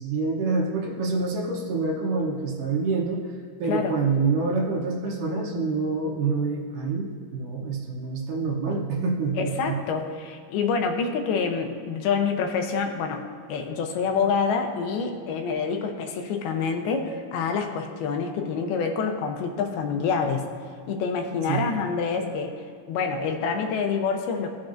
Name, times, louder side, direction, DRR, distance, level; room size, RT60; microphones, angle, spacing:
voice 1, 0.0-9.8 21.5-21.7, right 4 dB, 70° right, -1 dB, 2.3 m, -27 dB
voice 2, 9.4-13.2 13.5-20.5 20.9-22.5 22.9-24.5, left 5 dB, 85° left, 4 dB, 2.8 m, -27 dB
16.0 x 7.0 x 2.6 m, 2.2 s
omnidirectional pair, 4.3 m